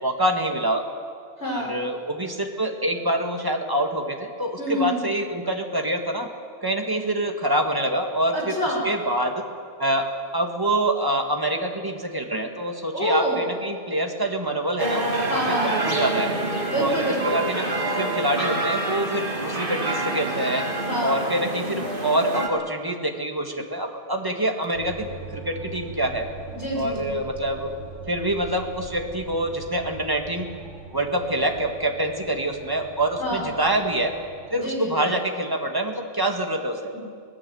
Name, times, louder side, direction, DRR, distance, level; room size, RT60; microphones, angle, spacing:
voice 1, 0.0-0.8 1.4-6.3 6.6-8.6 8.8-9.4 9.8-10.1 10.3-15.5 15.8-16.3 16.7-16.9 17.2-17.7 18.0-20.7 21.0-26.3 26.7-27.7 28.1-30.5 30.9-34.1 34.5-36.9, right 1 dB, 15° right, 3 dB, 2.1 m, -26 dB
voice 2, 1.4-1.7 4.6-5.0 8.3-8.9 12.9-13.4 15.3-15.7 16.7-17.4 20.9-21.2 26.5-27.1 33.2-33.4 34.5-35.0 36.9-37.0, left 1 dB, 60° left, -1 dB, 6.0 m, -27 dB
sound 1, 14.8-22.5, right 2 dB, 40° right, 2.6 m, -27 dB
sound 2, 24.7-34.7, right 3 dB, 70° right, 8.0 m, -41 dB
24.5 x 18.5 x 7.9 m, 2.1 s
omnidirectional pair, 1.3 m